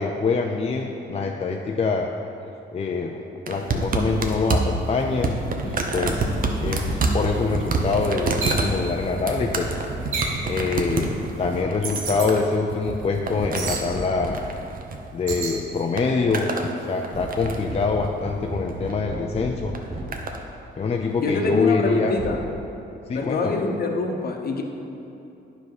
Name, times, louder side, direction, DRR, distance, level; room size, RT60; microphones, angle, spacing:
voice 1, 0.0-2.1 2.7-3.2 3.5-6.3 6.6-10.0 10.4-14.4 15.1-16.5 16.9-19.8 20.8-22.1 23.1-23.6, left 4 dB, 30° left, 1 dB, 0.5 m, -25 dB
sound 1, 3.5-15.4 15.7-16.7 17.0-17.8 18.7-19.0 19.7-20.4 21.3-21.4, right 3 dB, 45° right, 0.9 m, -28 dB
sound 2, 6.0-7.2 9.4-10.6 13.3-14.6 17.1-20.3 22.2-22.3, right 1 dB, 30° right, 1.3 m, -35 dB
sound 3, 8.4-8.7 10.1-10.4 11.8-12.3 13.5-13.9 15.3-15.6, right 4 dB, 85° right, 1.2 m, -28 dB
voice 2, 21.2-22.4 23.1-24.6, left 3 dB, 50° left, 3 dB, 1.0 m, -25 dB
9.4 x 5.7 x 4.9 m, 2.8 s
cardioid pair, 90°, 20 cm